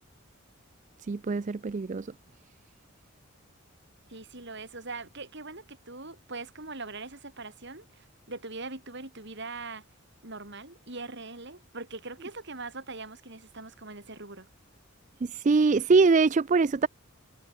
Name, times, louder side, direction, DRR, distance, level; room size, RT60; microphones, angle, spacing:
voice 1, 1.1-2.1 15.3-16.9, right 4 dB, 35° right, 0.4 m, -23 dB
voice 2, 4.1-9.8 10.2-14.5, right 3 dB, 55° right, 5.2 m, -41 dB
head